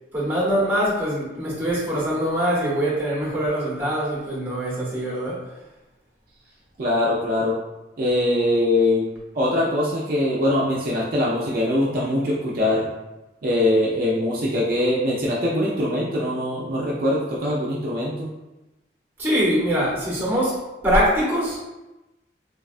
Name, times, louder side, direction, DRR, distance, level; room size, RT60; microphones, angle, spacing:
voice 1, 0.1-5.4 19.2-20.6 20.8-21.6, equal, 10° right, -7 dB, 0.8 m, -23 dB
voice 2, 6.8-7.6 8.0-9.1 9.3-12.9 13.4-18.3, left 1 dB, 50° right, -5 dB, 0.4 m, -22 dB
3.4 x 2.2 x 2.4 m, 1.0 s
head